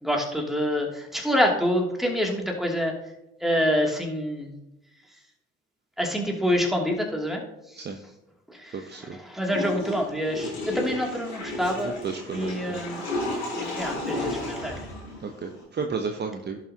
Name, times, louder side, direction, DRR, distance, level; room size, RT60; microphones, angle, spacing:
voice 1, 0.0-2.9 3.4-4.5 6.0-7.4 8.6-11.9 12.3-13.0 13.5-14.8, equal, ahead, 0 dB, 2.6 m, -26 dB
voice 2, 8.9-9.2 11.8-12.8 15.2-16.6, right 5 dB, 35° right, 4 dB, 0.9 m, -32 dB
Water / Toilet flush, 9.4-15.6, left 2 dB, 85° left, 2.8 m, -33 dB
16.0 x 6.1 x 2.9 m, 0.92 s
figure-of-eight pair, 45°, 31 cm